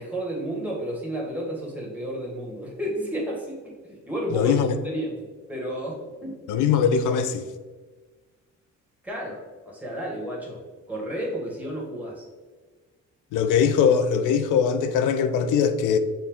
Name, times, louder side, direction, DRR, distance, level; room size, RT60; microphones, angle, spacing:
voice 1, 0.0-4.5 4.8-6.4 9.0-9.4 9.6-12.2, right 1 dB, 5° right, 1.5 m, -32 dB
voice 2, 4.3-4.7 6.5-7.5 13.3-16.0, left 7 dB, 85° left, 0.5 m, -21 dB
6.4 x 2.3 x 3.6 m
cardioid pair, 90°, 30 cm